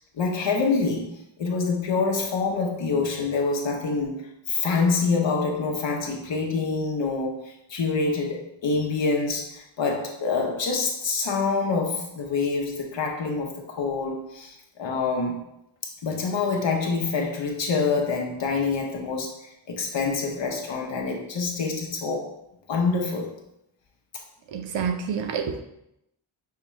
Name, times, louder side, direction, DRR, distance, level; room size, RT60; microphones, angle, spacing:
voice 1, 0.1-1.1 1.4-15.4 16.0-22.3 22.7-23.3, left 4 dB, 65° left, -1 dB, 0.8 m, -26 dB
voice 2, 24.5-25.6, right 6 dB, 65° right, 5 dB, 0.6 m, -28 dB
5.7 x 2.2 x 3.0 m, 0.82 s
wide cardioid pair, 100°, 49 cm